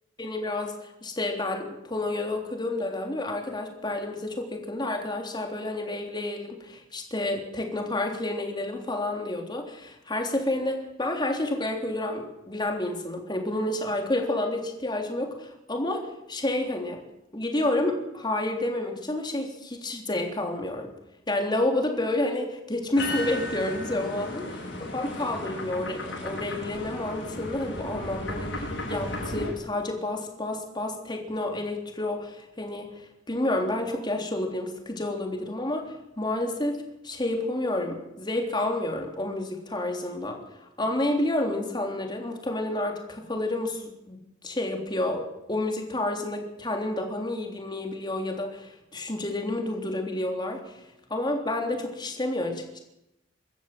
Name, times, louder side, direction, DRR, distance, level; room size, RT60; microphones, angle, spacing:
voice 1, 0.2-17.0 17.3-20.9 21.3-24.4 24.9-32.9 33.3-36.8 37.0-44.2 44.4-50.8 51.1-52.8, left 1 dB, 25° left, 3 dB, 3.5 m, -30 dB
sound 1, 23.0-29.5, left 1 dB, 70° left, 7.9 m, -35 dB
24.5 x 13.5 x 7.8 m, 0.87 s
head